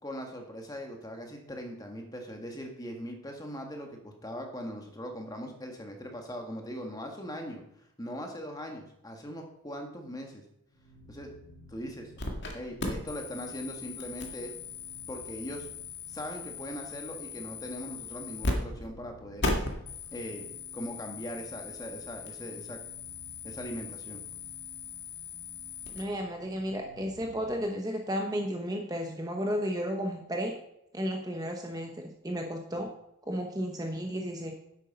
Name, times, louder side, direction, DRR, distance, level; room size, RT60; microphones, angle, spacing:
voice 1, 0.0-7.6 8.0-10.4 11.1-11.3 11.7-12.1 12.5-14.5 15.1-15.7 16.1-19.5 20.1-22.8 23.4-24.2, equal, 15° left, 3 dB, 1.6 m, -40 dB
sound 1, 10.7-27.7, left 1 dB, 90° left, 1.7 m, -55 dB
sound 2, 12.2-12.5 12.8-18.5 18.8-18.9 19.4-26.0, left 3 dB, 50° left, 2.0 m, -38 dB
voice 2, 25.9-30.5 30.9-32.9 33.3-34.5, equal, 15° right, 2 dB, 1.0 m, -33 dB
10.0 x 8.2 x 5.3 m, 0.81 s
head